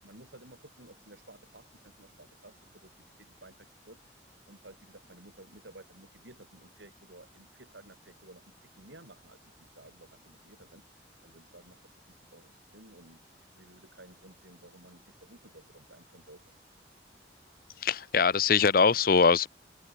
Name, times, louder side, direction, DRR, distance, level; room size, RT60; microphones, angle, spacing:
voice 1, 0.0-16.5, right 1 dB, 90° right, 7.7 m, -55 dB
voice 2, 17.8-19.5, left 5 dB, 55° left, 0.7 m, -22 dB
head